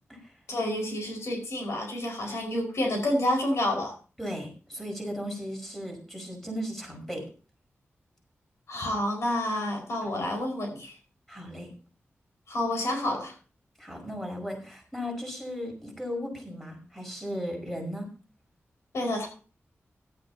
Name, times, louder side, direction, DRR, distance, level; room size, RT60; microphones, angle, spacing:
voice 1, 0.5-3.9 8.7-11.0 12.5-13.3 18.9-19.3, left 1 dB, 80° left, 2 dB, 5.0 m, -29 dB
voice 2, 4.2-7.2 11.3-11.7 13.8-18.1, equal, 5° left, 0 dB, 5.3 m, -36 dB
16.0 x 12.0 x 2.8 m, 0.36 s
wide cardioid pair, 105°, 5 cm